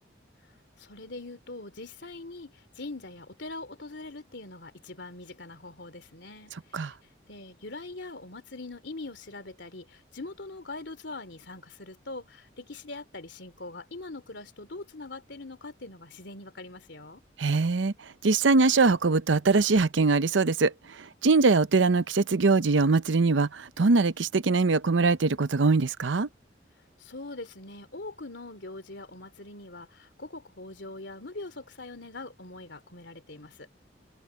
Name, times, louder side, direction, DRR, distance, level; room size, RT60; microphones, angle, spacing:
voice 1, 0.8-6.9 7.3-17.2 27.0-33.7, left 2 dB, 70° left, 3.1 m, -42 dB
voice 2, 17.4-17.9 18.2-20.7 21.2-26.3, right 3 dB, 85° right, 0.7 m, -22 dB
head